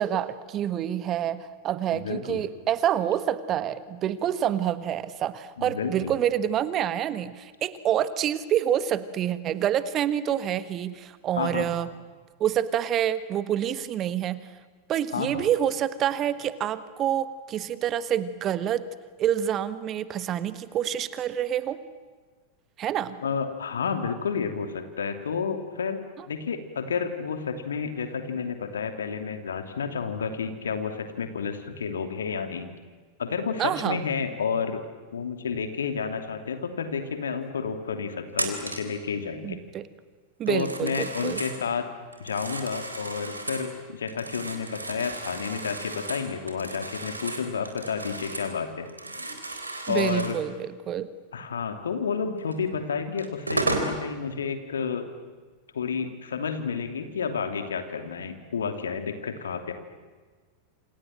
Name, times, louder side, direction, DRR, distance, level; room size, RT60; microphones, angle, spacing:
voice 1, 0.0-11.9 12.4-14.4 14.9-18.9 19.2-21.8 22.8-23.2 26.2-26.3 33.6-34.0 39.4-39.8 40.4-41.4 49.9-51.1, right 10 dB, 30° right, 14 dB, 1.5 m, -27 dB
voice 2, 1.9-2.4 5.6-6.1 11.4-11.7 15.1-15.5 23.2-26.0 26.3-32.7 33.2-34.8 35.1-39.6 40.5-41.9 42.2-48.9 49.9-50.4 51.3-55.1 55.7-59.7, left 6 dB, 70° left, 7 dB, 2.9 m, -30 dB
Telephone, 38.3-38.9 40.5-41.6 42.1-43.7 44.1-48.6 48.8-50.4 52.5-52.6 53.2-53.9, right 2 dB, 80° right, 3.8 m, -34 dB
28.0 x 27.5 x 7.7 m, 1.4 s
figure-of-eight pair, 90°, 0 cm